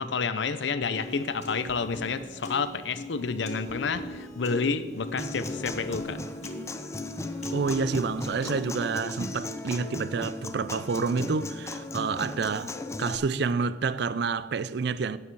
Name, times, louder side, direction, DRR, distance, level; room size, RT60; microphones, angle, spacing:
voice 1, 0.0-6.2, left 5 dB, 75° left, 0.6 m, -29 dB
Piano, 0.9-8.9, left 1 dB, 40° left, 2.0 m, -40 dB
Human voice / Acoustic guitar, 5.2-13.2, left 2 dB, 15° left, 0.6 m, -36 dB
voice 2, 7.5-12.7 13.0-15.2, right 4 dB, 65° right, 0.4 m, -28 dB
12.5 x 9.1 x 4.7 m
head